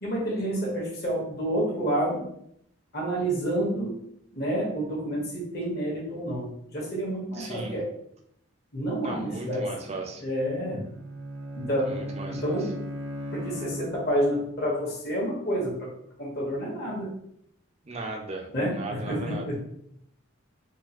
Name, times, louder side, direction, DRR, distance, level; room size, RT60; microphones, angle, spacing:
voice 1, 0.0-2.2 2.9-4.1 4.3-7.9 8.7-9.7 10.2-10.9 11.5-12.0 12.3-12.7 13.3-15.9 16.2-17.1 18.5-19.6, right 1 dB, 50° left, -4 dB, 1.2 m, -29 dB
voice 2, 7.3-7.8 9.0-10.2 11.8-12.7 17.8-19.5, right 3 dB, 30° right, 2 dB, 0.4 m, -37 dB
Bowed string instrument, 10.7-14.4, equal, 80° right, 0.5 m, -37 dB
3.8 x 2.3 x 2.9 m, 0.73 s
head